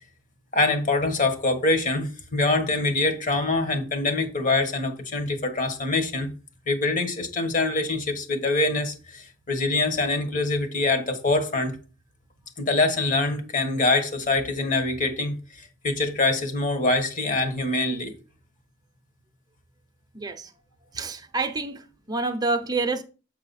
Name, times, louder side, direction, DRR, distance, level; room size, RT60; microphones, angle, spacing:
voice 1, 0.5-6.3 6.7-11.8 12.6-18.1, left 2 dB, 45° left, 1.4 m, -24 dB
voice 2, 20.1-20.5 20.9-23.0, right 3 dB, 20° right, 0.8 m, -28 dB
7.7 x 4.9 x 4.1 m
head